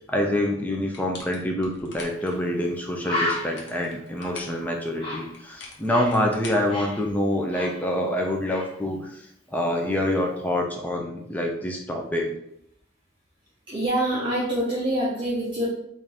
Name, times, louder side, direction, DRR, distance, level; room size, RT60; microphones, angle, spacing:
voice 1, 0.1-12.3, left 1 dB, 10° left, 1 dB, 0.4 m, -26 dB
sound 1, 0.9-2.4 3.1-4.6 5.3-7.4, left 3 dB, 60° left, 0.8 m, -43 dB
Bird, 2.2-2.3 2.6-2.7 3.0-6.2 6.5-8.2 8.5-8.8, left 1 dB, 25° left, 1.2 m, -33 dB
voice 2, 13.7-15.7, right 1 dB, 25° right, -8 dB, 0.7 m, -25 dB
3.9 x 2.5 x 3.3 m, 0.73 s
head